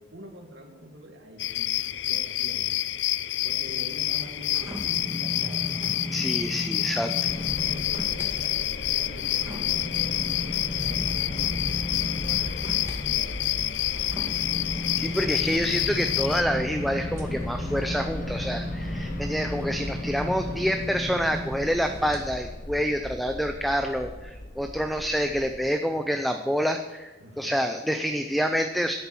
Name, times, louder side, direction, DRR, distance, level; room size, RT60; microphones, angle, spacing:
voice 1, 0.0-1.7 2.0-2.7 3.4-5.6 7.6-11.6 11.9-13.4 27.2-27.6, equal, 70° right, 2 dB, 1.9 m, -45 dB
sound 1, 1.4-16.4, left 14 dB, 75° left, 0.4 m, -28 dB
sound 2, 3.6-8.3 8.7-22.2 22.7-22.8, left 1 dB, 15° right, 2.0 m, -35 dB
voice 2, 6.1-7.3 15.0-28.9, equal, ahead, 6 dB, 0.5 m, -27 dB
sound 3, 7.3-25.7, left 2 dB, 45° left, 0.9 m, -37 dB
10.5 x 8.6 x 6.1 m, 1.2 s
head